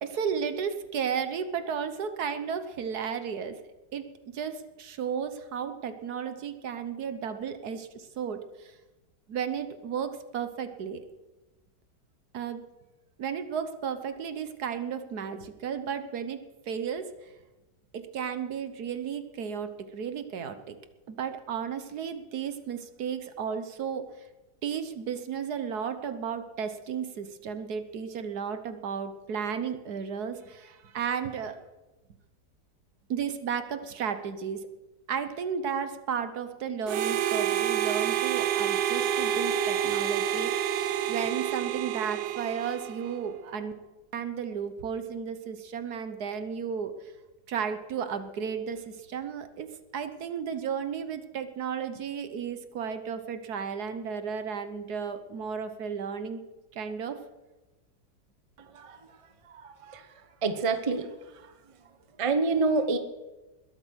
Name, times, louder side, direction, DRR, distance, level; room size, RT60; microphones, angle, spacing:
voice 1, 0.0-3.6 3.9-8.7 9.3-11.0 12.3-12.6 13.2-17.1 17.9-20.8 21.1-24.0 24.6-31.6 33.1-34.6 35.1-40.8 41.1-43.7 44.1-46.9 47.5-56.4 56.7-57.2, right 7 dB, 65° right, 9 dB, 1.5 m, -34 dB
Harmonica, 36.9-43.2, right 10 dB, 80° right, 1.4 m, -28 dB
voice 2, 60.4-61.1 62.2-63.0, right 3 dB, 25° right, 9 dB, 0.7 m, -25 dB
21.0 x 8.3 x 6.3 m, 1.1 s
omnidirectional pair, 1.9 m